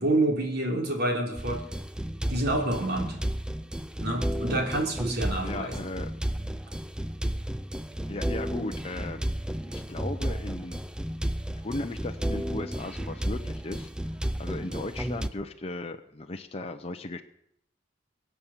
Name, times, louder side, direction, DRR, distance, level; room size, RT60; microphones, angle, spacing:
voice 1, 0.0-1.6 2.3-3.2 4.0-5.8, right 1 dB, 55° right, 2 dB, 3.5 m, -28 dB
sound 1, 1.4-15.3, right 1 dB, 5° right, 0.5 m, -33 dB
voice 2, 5.4-6.1 8.1-9.2 9.7-10.8 11.5-13.9 14.4-17.2, left 2 dB, 30° left, 5 dB, 0.8 m, -36 dB
23.0 x 8.3 x 7.3 m, 0.75 s
head